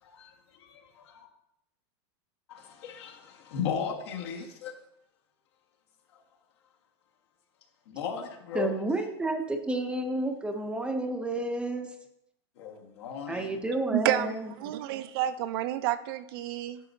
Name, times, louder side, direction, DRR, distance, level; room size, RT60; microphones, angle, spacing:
voice 1, 0.0-1.3 2.5-4.8 6.1-6.2 7.9-8.7 12.6-13.6, left 7 dB, 75° left, 1.5 m, -36 dB
voice 2, 8.5-11.9 13.3-14.5, right 2 dB, 5° right, 0.6 m, -30 dB
voice 3, 13.9-16.8, right 12 dB, 60° right, 0.5 m, -30 dB
10.0 x 6.2 x 2.7 m
supercardioid pair, 145°, 14 cm